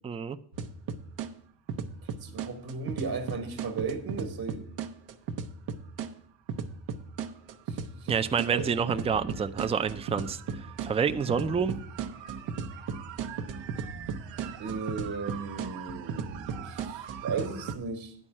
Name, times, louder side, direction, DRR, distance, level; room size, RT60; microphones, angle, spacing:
voice 1, 0.0-0.4 8.1-11.8, right 6 dB, 15° right, 0.4 m, -28 dB
sound 1, 0.5-1.3 1.7-6.1 6.5-17.8, right 6 dB, 80° right, 0.9 m, -36 dB
voice 2, 2.2-4.6 7.7-8.1 8.5-8.7 14.6-18.1, right 5 dB, 50° right, 1.4 m, -35 dB
10.0 x 4.5 x 7.4 m
cardioid pair, 105°, 44 cm